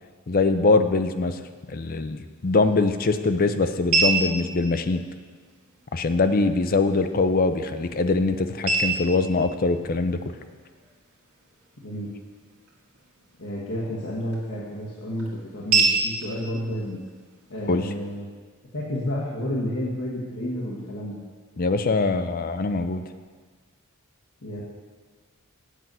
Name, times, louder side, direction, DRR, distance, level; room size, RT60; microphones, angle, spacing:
voice 1, 0.3-1.4 1.7-5.0 5.9-10.2 17.7-17.8 21.6-23.0, left 3 dB, 40° left, 9 dB, 0.5 m, -23 dB
sound 1, 2.1-18.1, right 4 dB, 90° right, 1.7 m, -31 dB
voice 2, 13.4-17.0 17.5-18.3 18.7-21.2 24.4-24.6, equal, 65° left, -8 dB, 1.5 m, -31 dB
8.3 x 7.5 x 5.4 m, 1.5 s
head